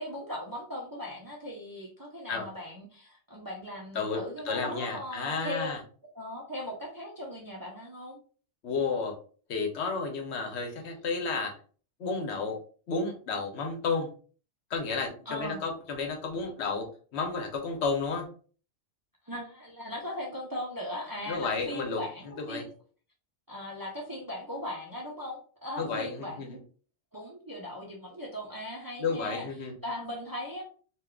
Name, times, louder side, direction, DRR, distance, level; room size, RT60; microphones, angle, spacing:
voice 1, 0.0-5.7 6.1-8.2 15.3-15.6 19.2-22.7 23.5-26.6 27.1-29.5 29.8-30.6, left 1 dB, 25° right, -3 dB, 0.5 m, -38 dB
voice 2, 4.4-5.8 8.6-9.1 9.5-11.5 12.0-12.6 12.9-14.1 14.7-16.9 17.1-18.3 21.3-22.0 22.5-22.6 25.8-26.6 29.0-29.7, left 4 dB, 75° left, 3 dB, 1.0 m, -31 dB
3.5 x 2.5 x 2.3 m, 0.41 s
omnidirectional pair, 1.2 m